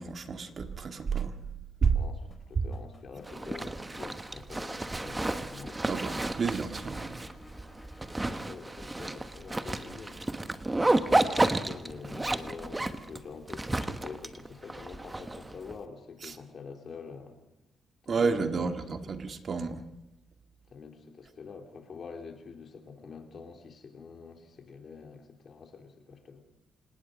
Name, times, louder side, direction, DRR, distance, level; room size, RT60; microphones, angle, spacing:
voice 1, 0.0-1.3 1.8-2.0 2.6-2.7 5.8-7.2 16.2-16.4 18.1-19.8, right 5 dB, 45° right, 7 dB, 1.8 m, -30 dB
voice 2, 1.9-6.2 8.0-17.4 18.0-19.3 20.7-26.4, left 5 dB, 50° left, 4 dB, 3.5 m, -46 dB
sound 1, 2.2-4.4 4.9-8.2, left 2 dB, 20° left, 4.8 m, -55 dB
Zipper (clothing), 3.2-15.7, right 2 dB, 15° right, 1.2 m, -32 dB
28.5 x 18.5 x 5.3 m, 0.90 s
cardioid pair, 90°, 0 cm